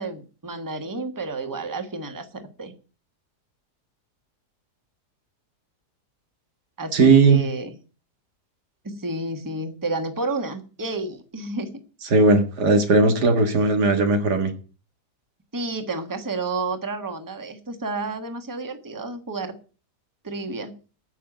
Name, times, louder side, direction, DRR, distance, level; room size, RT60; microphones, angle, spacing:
voice 1, 0.0-2.7 6.8-7.7 8.8-11.7 15.5-19.5 20.2-20.8, right 3 dB, 10° right, 6 dB, 1.4 m, -31 dB
voice 2, 6.9-7.4 12.1-14.5, right 3 dB, 80° right, 6 dB, 2.3 m, -17 dB
10.0 x 6.9 x 8.9 m, 0.37 s
omnidirectional pair, 1.7 m